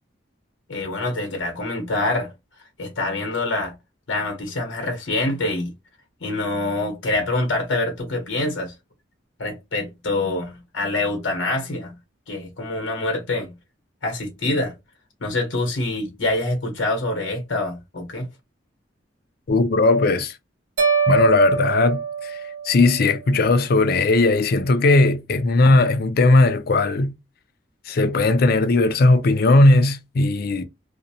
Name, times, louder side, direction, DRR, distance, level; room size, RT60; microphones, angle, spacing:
voice 1, 0.7-2.3 2.8-3.7 4.1-5.7 6.2-8.7 9.4-11.9 12.3-13.5 14.0-14.7 15.2-18.3, left 2 dB, 85° left, 0.9 m, -25 dB
voice 2, 19.5-20.3 21.1-22.4 22.6-27.1 27.9-30.6, left 2 dB, 55° left, 0.4 m, -17 dB
sound 1, 20.8-23.1, right 6 dB, 65° right, 0.8 m, -23 dB
2.5 x 2.0 x 2.7 m
head